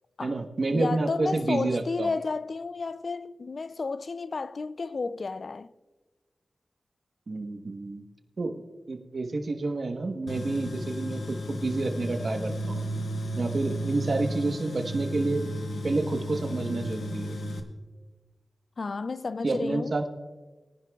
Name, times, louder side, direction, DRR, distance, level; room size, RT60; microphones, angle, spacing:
voice 1, 0.2-2.1 7.3-8.0 8.4-8.6 8.9-12.9 13.4-15.5 15.8-17.3 19.4-20.1, right 2 dB, 60° right, 1.1 m, -29 dB
voice 2, 0.7-5.7 18.8-19.9, left 4 dB, 60° left, 0.3 m, -32 dB
Tools, 10.3-17.6, equal, 80° left, 1.1 m, -33 dB
22.0 x 10.5 x 2.3 m
wide cardioid pair, 75°, 0 cm